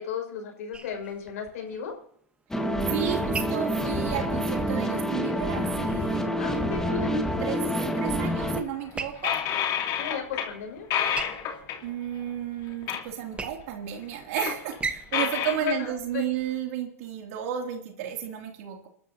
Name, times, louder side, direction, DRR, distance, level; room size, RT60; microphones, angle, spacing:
voice 1, 0.0-1.9 6.3-7.6 10.0-10.9 15.6-16.3, left 6 dB, 75° left, 3 dB, 5.6 m, -34 dB
sound 1, 0.7-16.8, right 4 dB, 15° right, 1.2 m, -42 dB
sound 2, 2.5-8.6, equal, 5° left, 1.7 m, -27 dB
voice 2, 2.9-7.1 7.4-7.6 8.0-9.4 11.8-18.9, right 10 dB, 65° right, 1 dB, 2.8 m, -33 dB
sound 3, 8.8-10.5 10.8-11.9 12.8-13.0 13.3-13.4 14.0-15.7, left 9 dB, 50° left, 2.7 m, -29 dB
29.5 x 12.5 x 2.8 m, 0.66 s
hypercardioid pair, 120°, 8 cm